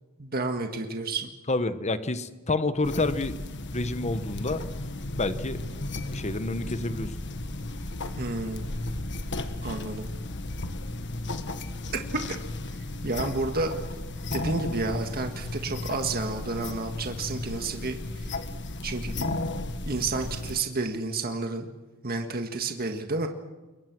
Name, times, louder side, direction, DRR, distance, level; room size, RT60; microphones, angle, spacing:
voice 1, 0.2-1.3 8.2-8.7 9.6-10.1 11.9-12.0 12.3-12.4 13.0-13.7 14.3-18.4 18.8-19.4 19.9-21.7 22.0-23.3, right 3 dB, 45° right, 5 dB, 1.8 m, -31 dB
voice 2, 1.5-3.4 3.7-4.6 5.2-5.6 6.1-7.1, left 2 dB, 30° left, 11 dB, 1.2 m, -28 dB
sound 1, 2.8-20.6, left 2 dB, 55° left, 1.5 m, -34 dB
28.0 x 23.0 x 6.2 m, 1.2 s
head